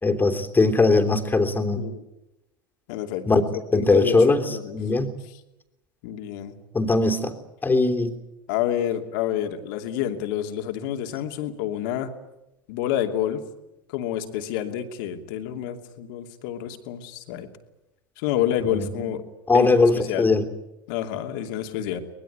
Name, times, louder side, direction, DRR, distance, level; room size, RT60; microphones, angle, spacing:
voice 1, 0.0-1.8 3.3-3.4 3.7-4.4 4.7-5.1 6.7-7.3 7.6-8.1 18.7-19.1 19.5-20.4, left 3 dB, 15° left, 6 dB, 3.2 m, -20 dB
voice 2, 2.9-3.3 3.7-4.8 5.3-5.4 6.0-6.6 8.5-12.1 12.7-13.4 13.9-17.5 18.2-19.2 19.5-20.3 20.9-22.0, left 11 dB, 65° left, 6 dB, 2.7 m, -28 dB
24.0 x 20.5 x 9.4 m, 0.93 s
hypercardioid pair, 90°, 12 cm